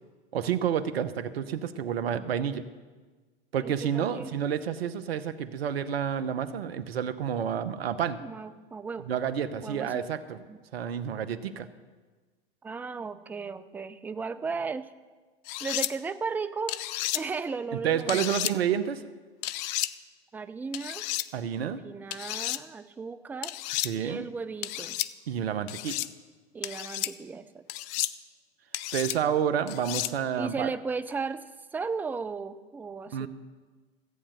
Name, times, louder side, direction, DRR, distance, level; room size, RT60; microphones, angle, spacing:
voice 1, 0.3-2.6 3.5-8.2 9.0-10.4 10.7-11.7 17.8-19.0 21.3-21.8 23.8-24.2 25.3-26.0 28.9-30.7 33.1-33.3, right 8 dB, 70° right, 13 dB, 0.9 m, -29 dB
voice 2, 3.6-4.3 8.2-9.1 9.6-10.0 10.5-10.6 12.6-14.9 15.6-16.8 17.1-18.4 20.3-21.0 21.6-23.5 24.0-25.0 26.5-27.6 30.4-31.4 31.7-33.3, right 4 dB, 5° right, 11 dB, 0.3 m, -35 dB
sound 1, 15.5-15.9 16.7-17.2 18.1-18.5 19.4-19.9 20.7-21.3 22.1-22.6 23.4-23.9 24.6-25.1 25.7-26.1 26.6-27.1 27.7-28.1 28.7-29.2 29.7-30.1, left 15 dB, 45° left, 0.5 m, -32 dB
14.5 x 8.6 x 6.7 m, 1.3 s
hypercardioid pair, 95°, 31 cm